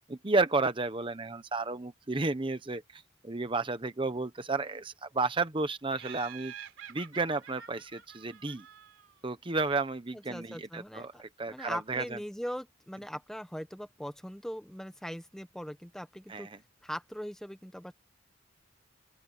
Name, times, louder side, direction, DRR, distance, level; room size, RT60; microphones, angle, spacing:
voice 1, 0.1-6.5 6.9-8.6 9.2-12.2 16.3-16.6, right 3 dB, 25° right, 0.9 m, -32 dB
Laughter, 5.9-9.3, right 9 dB, 80° right, 3.5 m, -48 dB
voice 2, 10.1-11.2 11.5-16.5 16.8-17.9, equal, 5° left, 1.1 m, -40 dB
open air
head